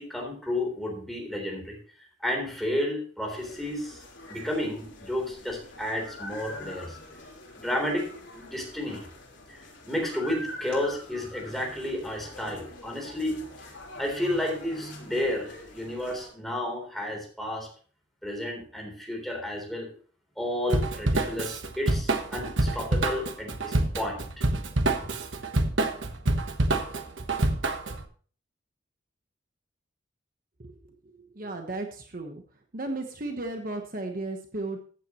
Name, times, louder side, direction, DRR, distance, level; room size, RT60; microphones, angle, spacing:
voice 1, 0.0-1.7 2.2-4.0 4.3-7.0 7.5-9.0 9.5-13.5 14.0-17.7 18.2-19.9 20.4-24.4, left 1 dB, ahead, 1 dB, 3.5 m, -32 dB
sound 1, 3.3-16.3, left 2 dB, 75° left, 3.6 m, -45 dB
Drum kit / Drum, 20.7-28.0, right 2 dB, 80° right, 1.2 m, -27 dB
voice 2, 30.6-32.4 32.7-34.8, right 2 dB, 45° right, 4 dB, 1.1 m, -35 dB
14.5 x 9.2 x 3.1 m, 0.43 s
head